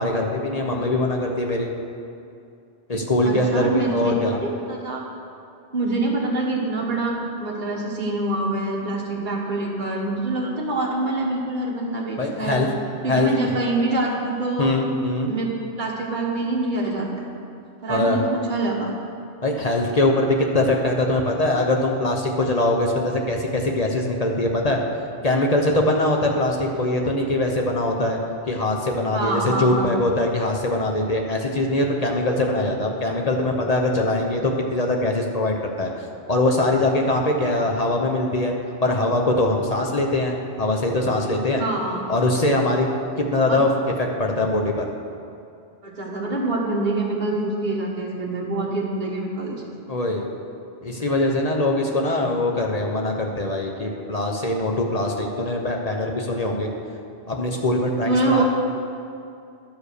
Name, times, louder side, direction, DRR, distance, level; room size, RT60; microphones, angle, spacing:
voice 1, 0.0-1.7 2.9-4.4 12.2-12.7 13.1-13.5 14.6-15.3 17.9-18.2 19.4-24.8 25.2-28.2 28.5-35.9 36.3-38.5 38.8-41.6 42.1-42.9 43.2-43.7 44.0-44.9 49.9-50.3 50.8-56.7 57.3-58.4, left 2 dB, 40° left, 1 dB, 0.8 m, -22 dB
voice 2, 3.2-5.0 5.7-12.6 13.0-14.7 15.3-15.5 15.8-17.2 17.8-18.9 29.1-30.0 41.6-42.1 43.5-43.6 45.8-49.6 58.0-58.4, right 2 dB, 45° right, -3 dB, 1.5 m, -25 dB
11.0 x 5.0 x 6.5 m, 2.5 s
omnidirectional pair, 1.1 m